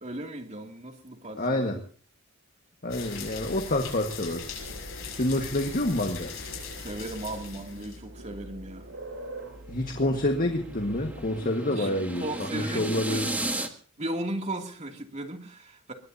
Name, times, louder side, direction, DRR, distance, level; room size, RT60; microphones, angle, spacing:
voice 1, 0.0-1.8 6.8-8.9 11.7-11.9 12.2-13.7 14.0-15.9, right 1 dB, 35° right, 2.7 m, -36 dB
voice 2, 1.4-1.8 2.8-4.5 5.1-6.3 9.7-13.3, left 1 dB, 45° left, 1.7 m, -28 dB
sound 1, 2.9-8.0, left 5 dB, 75° left, 6.8 m, -40 dB
sound 2, 4.6-11.5, right 1 dB, 80° right, 5.2 m, -44 dB
sound 3, 9.4-13.7, right 1 dB, 10° right, 1.5 m, -35 dB
23.0 x 20.5 x 2.8 m
head